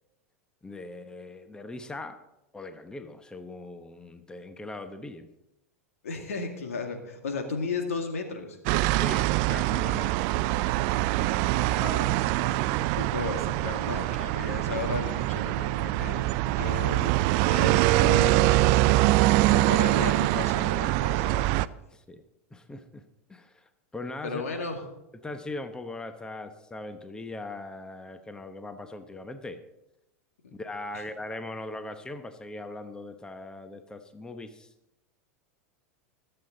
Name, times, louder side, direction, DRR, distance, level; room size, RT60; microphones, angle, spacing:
voice 1, 0.6-2.2 2.5-5.3 8.9-10.7 21.9-22.2 22.5-23.0 23.3-24.7 25.2-29.6 30.6-34.7, left 2 dB, 10° left, 9 dB, 1.0 m, -40 dB
voice 2, 6.0-8.6 11.5-19.0 19.5-21.5 24.2-24.8 30.4-30.5, left 4 dB, 80° left, 4 dB, 2.1 m, -35 dB
sound 1, 8.7-21.7, right 17 dB, 55° right, 0.4 m, -24 dB
21.5 x 7.9 x 3.9 m, 0.91 s
hypercardioid pair, 90°, 8 cm